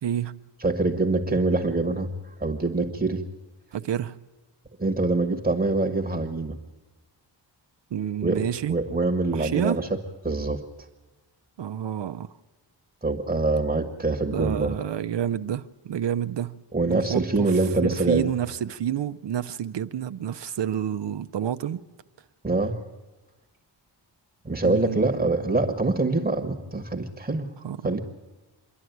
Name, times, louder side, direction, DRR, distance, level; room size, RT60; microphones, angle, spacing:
voice 1, 0.0-0.4 3.7-4.2 7.9-8.8 9.3-9.8 11.6-12.3 14.3-21.8 24.6-25.2 27.6-28.0, right 10 dB, 70° right, 0.6 m, -29 dB
voice 2, 0.6-2.1 2.4-3.3 4.8-6.6 8.2-8.4 8.7-9.9 10.2-10.6 13.0-14.7 16.7-18.3 22.4-22.8 24.4-27.5 27.8-28.0, right 3 dB, 15° right, 1.3 m, -24 dB
27.5 x 11.5 x 9.2 m
wide cardioid pair, 135°, 44 cm